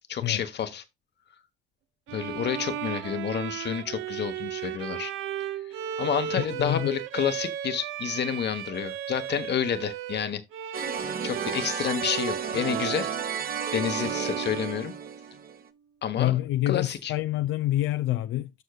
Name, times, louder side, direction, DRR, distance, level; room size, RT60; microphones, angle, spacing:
voice 1, 0.1-0.8 2.1-5.1 6.0-10.4 11.2-13.1 13.7-14.9 16.0-16.3 16.7-17.1, left 8 dB, 60° left, 1.3 m, -29 dB
Bowed string instrument, 2.1-15.5, right 10 dB, 90° right, 0.7 m, -35 dB
voice 2, 6.6-6.9 16.2-18.6, left 14 dB, 85° left, 0.5 m, -27 dB
sound 1, 10.7-15.6, right 6 dB, 50° right, 1.1 m, -33 dB
13.5 x 4.6 x 2.4 m
cardioid pair, 90°, 20 cm